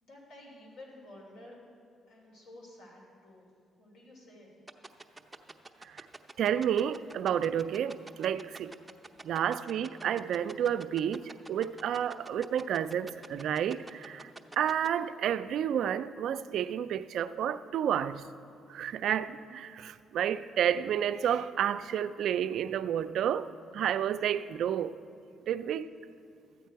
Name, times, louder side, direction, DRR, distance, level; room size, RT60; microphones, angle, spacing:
voice 1, 0.0-1.6 2.1-3.5 3.8-4.5, left 1 dB, 80° left, 3.1 m, -52 dB
sound 1, 4.7-14.9, right 2 dB, 15° right, 0.6 m, -46 dB
voice 2, 6.4-8.7 9.2-14.3 14.6-18.3 18.7-25.0 25.5-25.9, right 9 dB, 75° right, 0.3 m, -30 dB
13.0 x 8.4 x 4.6 m
cardioid pair, 90°, 0 cm